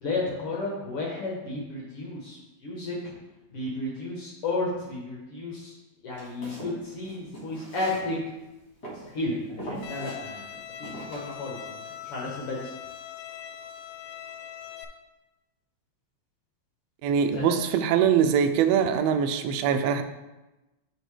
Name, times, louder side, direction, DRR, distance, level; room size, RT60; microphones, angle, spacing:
voice 1, 0.0-3.0 3.5-5.7 6.0-8.2 9.1-10.4 10.8-12.7 17.3-17.8, left 2 dB, 60° left, -3 dB, 1.7 m, -33 dB
Walk footsteps, 6.1-8.4 8.8-9.2 9.6-10.2 10.8-11.3, right 1 dB, 40° left, 2.2 m, -41 dB
Bowed string instrument, 9.8-14.8, left 9 dB, 90° left, 2.0 m, -41 dB
voice 2, 17.0-20.0, right 8 dB, 85° right, 7 dB, 1.4 m, -23 dB
9.2 x 4.4 x 3.2 m, 1.0 s
omnidirectional pair, 3.3 m